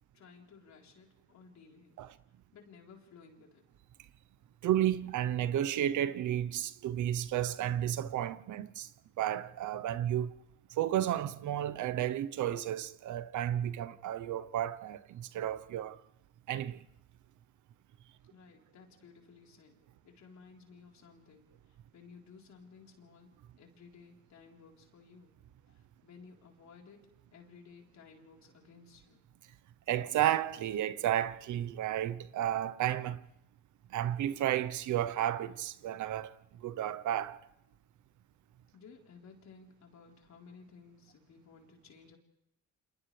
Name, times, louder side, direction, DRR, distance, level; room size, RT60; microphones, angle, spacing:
voice 1, 0.1-2.0 2.5-3.7 18.3-25.3 25.7-29.2 38.7-42.2, left 5 dB, 65° left, 4.1 m, -57 dB
voice 2, 4.6-8.9 9.2-10.3 10.8-16.0 16.5-16.8 29.9-33.2 33.9-36.3 36.6-37.4, right 11 dB, 75° right, 0.9 m, -32 dB
29.5 x 27.0 x 3.4 m
cardioid pair, 90°, 30 cm